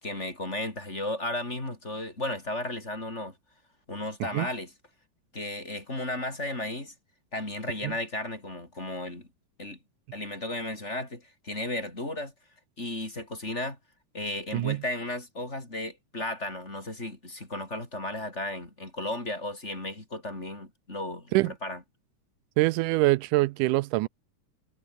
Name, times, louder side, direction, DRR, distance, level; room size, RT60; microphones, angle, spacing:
voice 1, 0.0-3.4 3.9-4.7 5.3-6.9 7.3-9.3 9.6-9.8 10.1-12.3 12.8-13.8 14.1-21.8, left 1 dB, 20° left, 5.0 m, -34 dB
voice 2, 22.6-24.1, right 20 dB, 85° right, 2.1 m, -24 dB
omnidirectional pair, 3.7 m